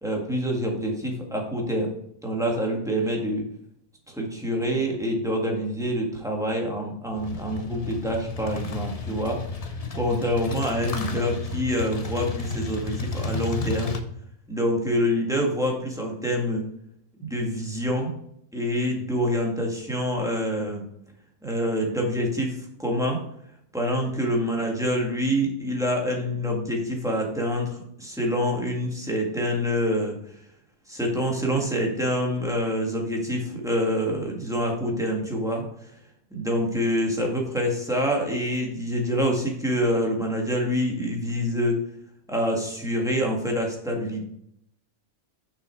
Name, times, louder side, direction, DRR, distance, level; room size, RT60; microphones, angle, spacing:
voice 1, 0.0-1.9 2.2-3.4 4.1-13.9 14.5-16.6 17.2-18.1 18.5-20.8 21.4-23.2 23.7-30.1 30.9-35.6 36.3-41.8 42.3-44.2, equal, ahead, 0 dB, 1.6 m, -26 dB
sound 1, 7.1-14.0, left 3 dB, 40° left, 0.6 m, -32 dB
6.4 x 6.2 x 4.6 m, 0.72 s
omnidirectional pair, 1.5 m